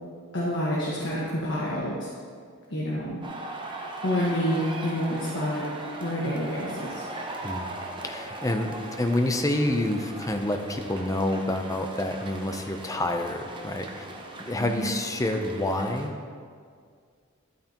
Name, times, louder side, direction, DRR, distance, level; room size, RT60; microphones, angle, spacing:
voice 1, 0.3-2.1 2.7-3.2 4.0-5.7 6.0-7.0 14.6-14.9, equal, 65° left, -5 dB, 1.4 m, -28 dB
sound 1, 3.2-16.1, right 2 dB, 25° right, 0.8 m, -39 dB
voice 2, 7.4-7.8 8.0-14.0 14.5-16.1, left 1 dB, 15° left, 5 dB, 0.6 m, -28 dB
12.0 x 8.8 x 3.0 m, 2.1 s
head